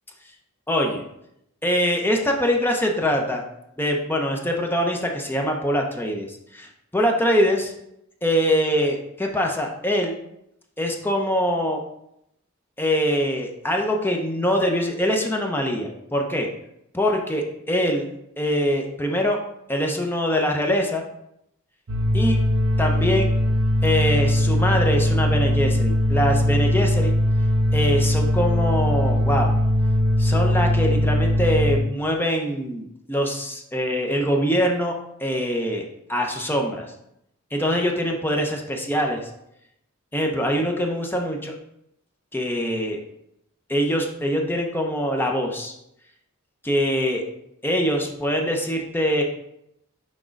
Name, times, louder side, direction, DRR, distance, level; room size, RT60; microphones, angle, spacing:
voice 1, 0.7-1.0 1.6-3.4 3.8-7.7 8.2-10.1 10.8-11.8 12.8-16.5 16.9-18.1 18.4-19.4 19.7-21.0 22.1-22.4 22.8-23.3 23.8-27.1 27.7-29.5 30.2-34.9 35.2-36.9 37.5-39.3 40.1-41.6 42.3-43.0 43.7-45.7 46.6-47.2 47.6-49.2, equal, 10° left, 2 dB, 0.6 m, -23 dB
sound 1, 21.9-31.8, left 1 dB, 80° right, 0.7 m, -20 dB
6.2 x 3.6 x 5.1 m, 0.79 s
head